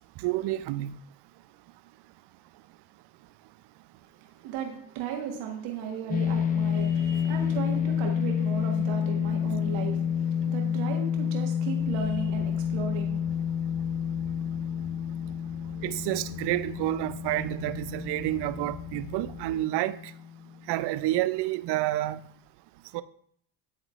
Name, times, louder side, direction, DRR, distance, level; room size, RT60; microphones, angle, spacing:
voice 1, 0.2-1.0 8.8-8.9 15.8-20.0 20.7-22.2 22.9-23.0, right 15 dB, 60° right, 0.5 m, -29 dB
voice 2, 4.2-13.5, right 8 dB, 80° right, 1.5 m, -36 dB
sound 1, 6.1-20.5, left 8 dB, 20° left, 0.3 m, -29 dB
sound 2, 11.8-19.5, left 3 dB, 70° left, 0.8 m, -46 dB
11.0 x 3.7 x 2.4 m
supercardioid pair, 70°, 48 cm